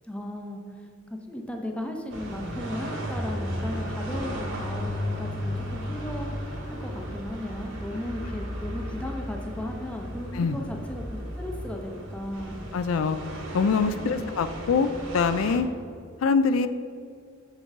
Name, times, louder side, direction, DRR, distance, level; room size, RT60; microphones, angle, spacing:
voice 1, 0.1-11.0 11.4-12.6 14.0-14.3, left 1 dB, 5° left, 2 dB, 0.7 m, -36 dB
sound 1, 2.1-15.6, equal, 65° right, 1.6 m, -34 dB
voice 2, 12.7-13.2 13.5-15.7 16.2-16.7, left 5 dB, 85° left, 11 dB, 0.4 m, -24 dB
6.7 x 4.5 x 5.9 m, 2.4 s
head